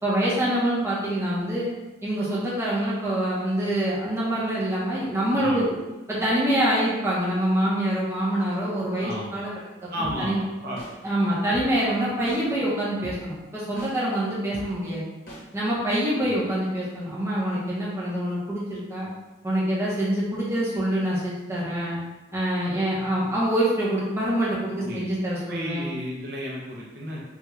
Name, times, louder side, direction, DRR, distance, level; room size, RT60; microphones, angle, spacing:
voice 1, 0.0-1.7 2.0-5.6 6.1-9.5 10.0-10.4 11.0-15.0 15.5-19.1 19.4-22.0 22.3-25.9, right 1 dB, 15° right, -7 dB, 0.7 m, -25 dB
voice 2, 9.0-9.3 9.9-10.8 16.2-16.4 24.8-25.1 25.5-27.3, equal, 50° right, -4 dB, 0.5 m, -33 dB
sound 1, 10.0-10.1 10.8-10.9 11.5-11.6 12.3-12.4 13.0-13.1 13.8-13.9 14.5-14.6 15.3-15.4, equal, 50° left, 0.9 m, -39 dB
3.5 x 2.3 x 3.0 m, 1.1 s
head